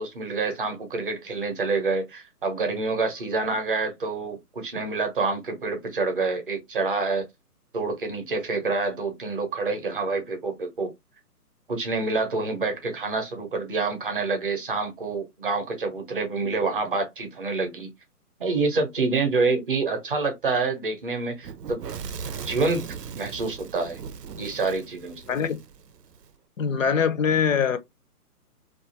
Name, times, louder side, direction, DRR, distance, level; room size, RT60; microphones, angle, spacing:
voice 1, 0.0-7.3 7.7-10.9 11.7-17.9 18.4-21.8 22.5-24.0 24.4-25.4, right 3 dB, 35° right, 0.6 m, -27 dB
Fire / Explosion, 21.4-26.3, right 6 dB, 85° right, 0.6 m, -38 dB
voice 2, 25.3-25.6 26.6-27.8, left 7 dB, 55° left, 0.5 m, -23 dB
2.4 x 2.3 x 2.7 m
hypercardioid pair, 155°, 47 cm